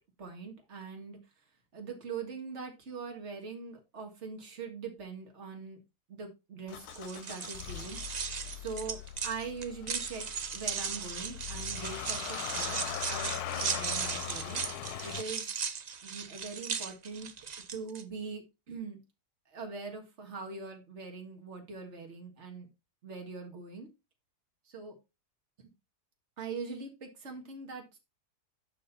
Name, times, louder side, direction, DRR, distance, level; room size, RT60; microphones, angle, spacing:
voice 1, 0.2-1.2 1.7-5.8 6.1-10.3 10.5-12.8 13.1-15.5 16.0-17.3 17.7-19.0 19.5-22.7 23.0-23.9 24.7-25.0 26.4-28.0, right 4 dB, 45° right, 3 dB, 2.1 m, -42 dB
Motor vehicle (road) / Engine starting, 6.7-15.2, left 12 dB, 75° left, 1.1 m, -41 dB
sound 1, 6.9-18.0, right 6 dB, 80° right, 0.3 m, -37 dB
11.5 x 4.3 x 4.1 m, 0.25 s
omnidirectional pair, 1.7 m